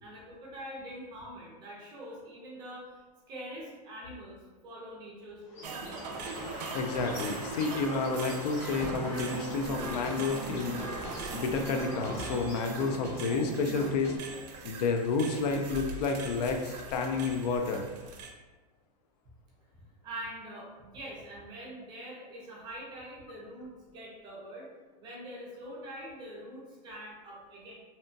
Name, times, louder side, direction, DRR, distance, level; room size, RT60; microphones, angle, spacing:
voice 1, 0.0-5.7 20.0-24.7 25.0-27.7, equal, 20° right, -5 dB, 0.5 m, -44 dB
Bird, 5.5-13.2, left 1 dB, 60° left, 0.8 m, -44 dB
sound 1, 5.6-18.3, right 4 dB, 90° right, 0.4 m, -41 dB
voice 2, 6.7-14.2 14.6-17.9, left 4 dB, 80° left, 4 dB, 0.4 m, -30 dB
sound 2, 8.6-14.2, right 2 dB, 10° left, 0.8 m, -41 dB
2.7 x 2.2 x 2.6 m, 1.3 s
supercardioid pair, 165°, 20 cm